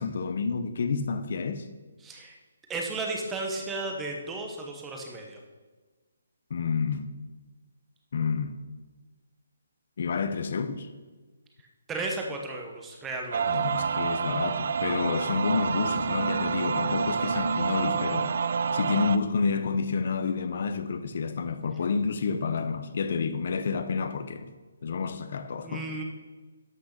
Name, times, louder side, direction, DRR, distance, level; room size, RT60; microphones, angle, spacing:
voice 1, 0.0-1.7 6.5-7.1 8.1-8.6 10.0-10.9 13.5-18.3 18.7-24.5 24.8-25.9, left 5 dB, 35° left, 0.7 m, -29 dB
voice 2, 2.0-2.4 2.7-5.4 11.9-13.6 25.6-26.0, right 2 dB, 5° right, 0.9 m, -34 dB
sound 1, 13.3-19.2, right 6 dB, 35° right, 0.4 m, -28 dB
12.0 x 6.2 x 6.6 m
hypercardioid pair, 180°, 0 cm